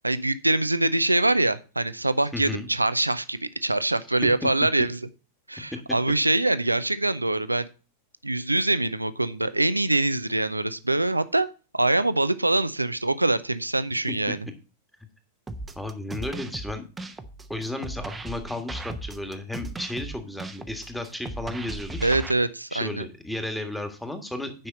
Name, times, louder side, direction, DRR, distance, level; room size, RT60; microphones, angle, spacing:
voice 1, 0.0-5.0 5.5-7.7 8.2-11.5 11.7-14.4 22.0-23.1, right 2 dB, 85° right, 15 dB, 0.5 m, -24 dB
voice 2, 2.3-2.7 4.2-4.5 14.3-14.4 15.8-16.9 17.5-22.0 22.7-24.7, left 1 dB, ahead, 6 dB, 1.6 m, -33 dB
sound 1, 15.5-22.3, right 2 dB, 15° right, 0.9 m, -37 dB
9.0 x 5.6 x 5.1 m, 0.33 s
figure-of-eight pair, 90°, 0 cm